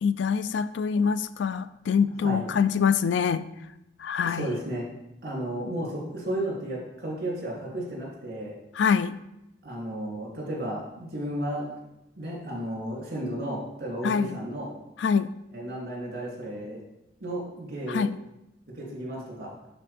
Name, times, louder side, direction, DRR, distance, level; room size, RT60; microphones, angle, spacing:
voice 1, 0.0-3.4 4.0-4.5 8.8-9.2 14.0-14.4 15.0-15.3 17.9-18.2, left 6 dB, 85° left, 14 dB, 0.4 m, -25 dB
voice 2, 4.2-4.9 5.2-8.5 9.6-11.7 12.2-14.7 15.5-16.8 17.2-18.1 18.7-19.5, right 1 dB, 55° right, -3 dB, 2.8 m, -33 dB
11.0 x 4.2 x 3.4 m, 0.88 s
head